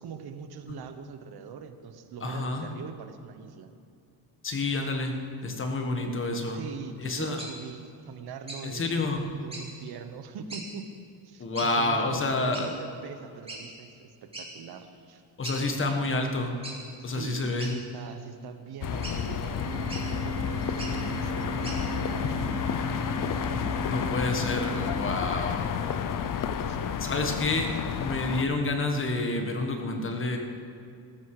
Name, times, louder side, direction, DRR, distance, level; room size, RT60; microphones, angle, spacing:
voice 1, 0.0-3.7 6.5-9.1 9.4-10.9 11.2-15.2 17.0-22.7 26.6-27.0, right 6 dB, 60° right, 8 dB, 1.3 m, -42 dB
voice 2, 2.2-2.7 4.4-6.6 7.0-7.4 8.6-9.3 11.4-12.7 15.4-16.5 17.0-17.7 23.9-25.7 27.0-30.4, left 2 dB, 30° left, 4 dB, 1.5 m, -29 dB
sound 1, 7.4-7.5 8.5-8.6 9.5-9.7 10.5-10.7 11.6-11.7 12.5-12.7 13.5-13.6 14.3-14.5 14.9-15.0 15.4-15.6 16.6-16.8 17.6-18.1 19.0-19.2 19.9-20.0 20.7-20.9 21.6-21.8, right 2 dB, 15° right, 2.8 m, -39 dB
sound 2, 18.8-28.5, left 8 dB, 50° left, 0.8 m, -31 dB
Organ, 19.6-25.6, right 4 dB, 85° right, 2.0 m, -38 dB
18.5 x 15.0 x 4.9 m, 2.5 s
cardioid pair, 175°, 42 cm